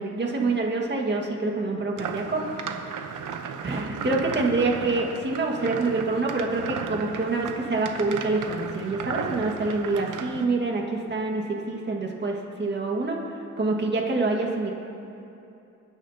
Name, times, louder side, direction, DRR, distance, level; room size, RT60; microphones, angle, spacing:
voice 1, 0.0-2.4 3.6-13.2 13.6-14.7, right 3 dB, 35° right, 0 dB, 1.7 m, -26 dB
sound 1, 2.0-10.5, right 6 dB, 90° right, 0.9 m, -35 dB
27.5 x 9.9 x 2.8 m, 2.8 s
cardioid pair, 105°, 31 cm